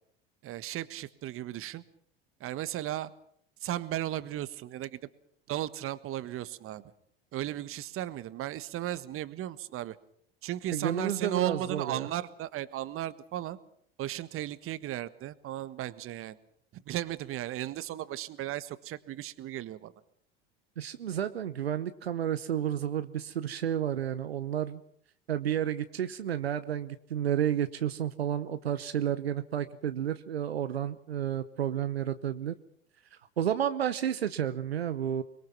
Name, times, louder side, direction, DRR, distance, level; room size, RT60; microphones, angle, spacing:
voice 1, 0.4-1.8 2.4-3.1 3.6-5.0 5.5-6.8 7.3-9.9 10.4-13.6 14.0-16.4 16.7-19.9, right 13 dB, 45° right, 15 dB, 1.4 m, -35 dB
voice 2, 10.7-12.1 20.8-24.8 25.3-32.5 33.4-35.2, right 10 dB, 85° right, 12 dB, 0.9 m, -31 dB
24.0 x 22.0 x 6.1 m, 0.66 s
figure-of-eight pair, 70°, 31 cm